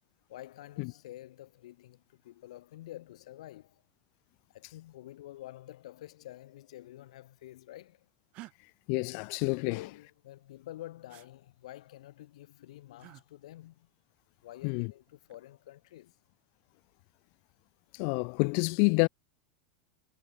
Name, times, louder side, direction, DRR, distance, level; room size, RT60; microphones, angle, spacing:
voice 1, 0.3-3.8 4.5-8.1 9.6-13.9 14.4-16.2, left 14 dB, 80° left, 5.3 m, -49 dB
sound 1, 8.3-8.5 11.1-11.3 13.0-13.2 15.0-15.4, right 19 dB, 40° right, 1.3 m, -50 dB
voice 2, 8.9-9.8 14.6-14.9 17.9-19.1, left 40 dB or more, 50° left, 0.5 m, -28 dB
supercardioid pair, 145°, 3 cm